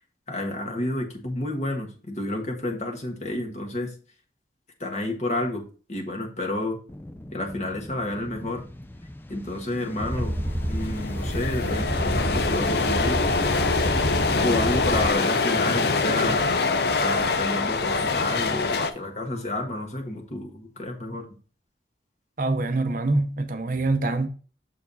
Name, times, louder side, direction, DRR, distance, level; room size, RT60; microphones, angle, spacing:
voice 1, 0.3-3.9 4.8-5.6 5.9-6.8 7.3-8.6 9.3-10.3 10.7-13.2 14.4-16.4 17.0-21.3, left 1 dB, 40° left, 1.5 m, -30 dB
sound 1, 6.9-19.7, left 2 dB, 10° left, 0.4 m, -41 dB
sound 2, 10.0-15.1, equal, 15° right, 0.7 m, -29 dB
sound 3, 10.1-10.2 10.4-18.9, left 3 dB, 65° left, 0.6 m, -24 dB
voice 2, 22.4-24.3, right 2 dB, 50° right, 0.7 m, -24 dB
7.1 x 4.6 x 4.1 m
head